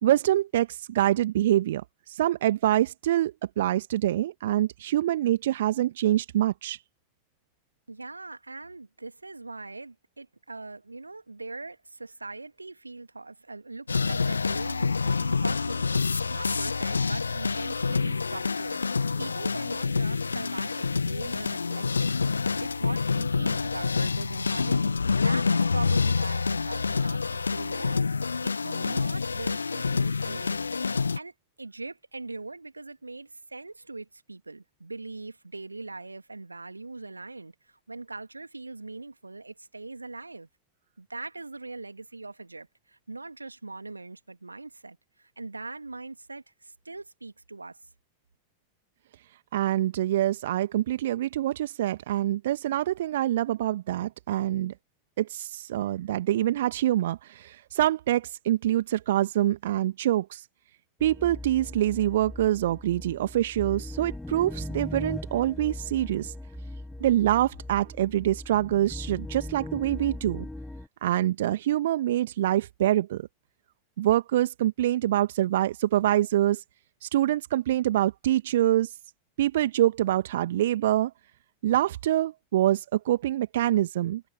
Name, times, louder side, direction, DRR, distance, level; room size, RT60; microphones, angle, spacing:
voice 1, 0.0-6.8 49.5-54.7 55.2-60.5 61.0-66.3 67.0-70.4 71.0-73.3 74.0-76.6 77.0-78.9 79.4-81.1 81.6-84.2, right 13 dB, 60° right, 1.4 m, -25 dB
voice 2, 7.9-30.7 30.9-31.3 31.6-40.5 41.0-47.8, right 3 dB, 80° right, 2.3 m, -41 dB
sound 1, 13.9-31.2, left 4 dB, 75° left, 1.0 m, -27 dB
sound 2, 61.0-70.9, left 1 dB, 5° left, 6.6 m, -39 dB
figure-of-eight pair, 90°, 0 cm